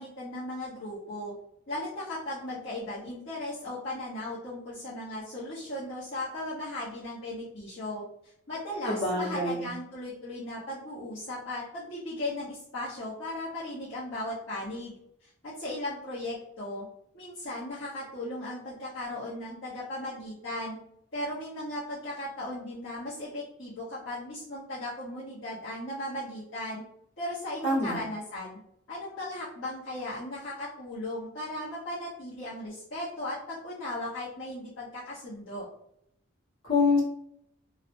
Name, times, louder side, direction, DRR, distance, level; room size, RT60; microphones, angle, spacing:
voice 1, 0.0-1.3 1.7-14.9 15.2-16.8 17.1-20.8 21.1-26.8 27.2-28.6 28.9-35.7, left 1 dB, 65° left, -10 dB, 0.9 m, -37 dB
voice 2, 8.8-9.7 27.6-28.0 36.7-37.0, left 3 dB, 80° left, -6 dB, 1.2 m, -25 dB
3.0 x 2.0 x 2.6 m, 0.75 s
head